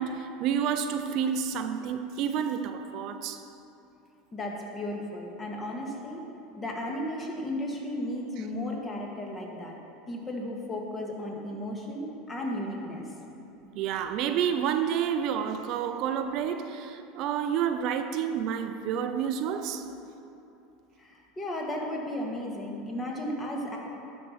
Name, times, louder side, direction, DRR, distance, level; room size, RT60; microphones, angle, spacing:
voice 1, 0.0-3.4 13.7-19.9, right 8 dB, 55° right, 8 dB, 0.5 m, -29 dB
voice 2, 4.3-6.2 6.6-9.8 10.1-13.1 21.0-23.8, left 1 dB, 25° left, -1 dB, 1.7 m, -34 dB
11.5 x 4.4 x 5.5 m, 2.8 s
hypercardioid pair, 95°, 0 cm